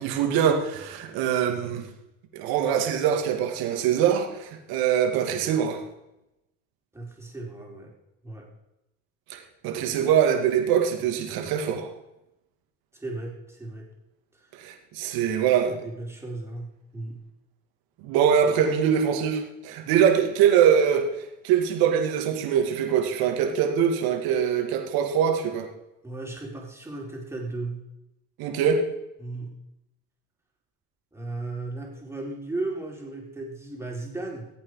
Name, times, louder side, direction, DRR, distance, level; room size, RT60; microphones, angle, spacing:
voice 1, 0.0-1.9 2.3-5.8 9.3-11.9 14.6-15.8 18.0-21.1 21.4-25.7 28.4-28.8, right 8 dB, 75° right, 3 dB, 2.4 m, -23 dB
voice 2, 6.9-7.9 8.2-8.5 12.9-13.9 14.3-14.5 15.2-15.4 15.7-17.2 26.0-27.9 29.2-29.6 31.1-34.5, right 2 dB, 5° right, -1 dB, 4.2 m, -36 dB
15.5 x 8.6 x 4.9 m, 0.90 s
supercardioid pair, 90°, 37 cm